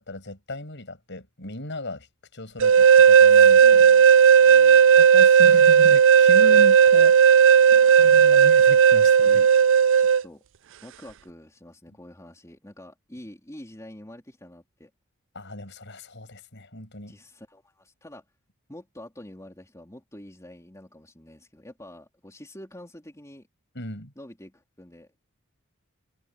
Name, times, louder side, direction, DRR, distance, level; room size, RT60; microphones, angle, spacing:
voice 1, 0.0-2.1 2.3-3.9 5.0-7.5 8.0-9.4 15.3-17.2 23.7-24.1, left 1 dB, 55° left, 7.8 m, -36 dB
sound 1, 2.6-10.2, right 7 dB, 60° right, 0.4 m, -14 dB
voice 2, 2.8-4.8 7.7-8.1 9.2-9.5 10.0-10.4 10.8-14.9 17.1-18.2 18.7-23.5 24.1-25.2, left 1 dB, 15° left, 3.4 m, -46 dB
head